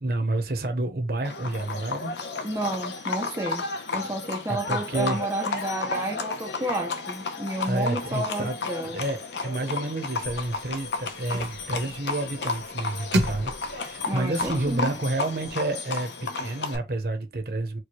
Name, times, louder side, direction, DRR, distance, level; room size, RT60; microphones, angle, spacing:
voice 1, 0.0-2.2 4.5-5.2 7.6-8.6 8.8-17.8, right 2 dB, 55° right, 0.9 m, -29 dB
Livestock farm animals working animals, 1.2-16.8, left 4 dB, 75° left, 0.7 m, -33 dB
voice 2, 2.4-9.0 14.0-14.9, right 1 dB, 15° right, 0.5 m, -31 dB
sound 1, 10.2-15.5, right 1 dB, 85° right, 1.1 m, -33 dB
4.6 x 2.3 x 3.0 m
head